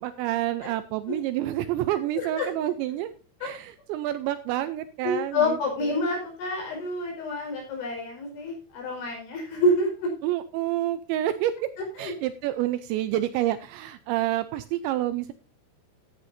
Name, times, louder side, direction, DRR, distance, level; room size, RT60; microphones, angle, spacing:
voice 1, 0.0-3.1 3.4-6.0 10.2-11.7 12.0-15.3, right 13 dB, 80° right, 12 dB, 2.7 m, -28 dB
voice 2, 2.1-2.7 3.4-3.5 5.0-10.1 12.0-12.1, left 1 dB, 65° left, 1 dB, 7.2 m, -28 dB
14.5 x 10.0 x 2.7 m, 0.34 s
omnidirectional pair, 5.7 m